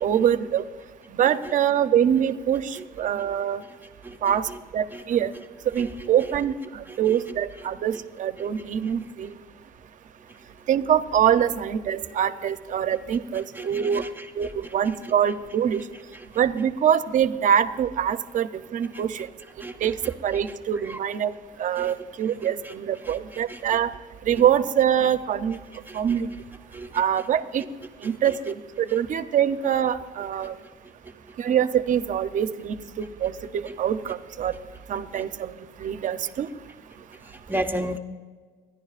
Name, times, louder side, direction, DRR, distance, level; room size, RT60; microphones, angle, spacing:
voice 1, 0.0-0.6 1.1-3.6 4.2-4.5 4.7-5.3 5.7-9.3 10.7-14.0 14.4-15.8 16.4-19.3 19.8-20.0 20.2-21.3 21.6-23.9 24.3-25.6 25.9-26.3 26.9-27.6 28.0-30.5 31.4-34.5 34.9-35.5 35.8-36.5, right 9 dB, 50° right, 12 dB, 0.7 m, -24 dB
voice 2, 4.0-4.6 4.9-5.0 5.8-6.3 6.9-7.2 8.8-8.9 10.3-10.4 13.3-14.7 15.0-15.1 16.1-16.3 18.9-19.0 19.6-20.4 20.8-21.0 21.8-22.0 22.4-23.6 25.9-26.2 26.7-27.0 28.0-28.4 28.9-29.0 30.4-30.5 33.7-33.8 35.1-35.2 37.1-38.0, right 1 dB, 10° right, 5 dB, 0.6 m, -36 dB
24.0 x 11.0 x 2.5 m, 1.5 s
cardioid pair, 110°, 17 cm